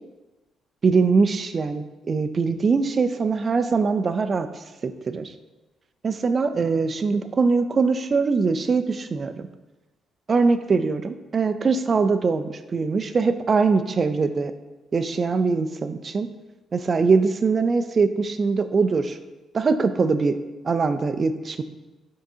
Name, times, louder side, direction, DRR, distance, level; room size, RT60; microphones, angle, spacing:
voice 1, 0.8-5.3 6.0-9.5 10.3-14.5 14.9-16.3 16.7-19.2 19.5-20.4 20.6-21.6, right 4 dB, 40° right, 10 dB, 0.5 m, -22 dB
10.0 x 3.7 x 2.8 m, 1.1 s
cardioid pair, 90°, 0 cm